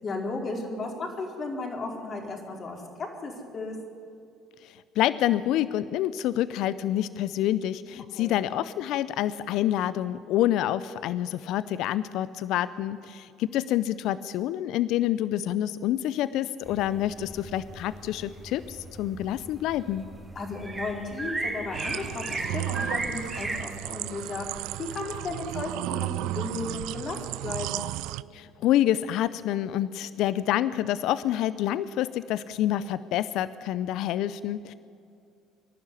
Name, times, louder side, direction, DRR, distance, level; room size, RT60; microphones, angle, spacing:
voice 1, 0.0-3.8 8.1-8.4 20.3-27.9, left 3 dB, 45° left, 2 dB, 4.5 m, -35 dB
voice 2, 4.6-20.1 28.3-34.7, left 12 dB, 65° left, 16 dB, 0.5 m, -27 dB
sound 1, 16.7-23.6, right 2 dB, 20° right, 3.4 m, -36 dB
sound 2, 21.7-28.2, right 17 dB, 70° right, 0.4 m, -34 dB
24.5 x 11.5 x 10.0 m, 2.5 s
hypercardioid pair, 60°, 0 cm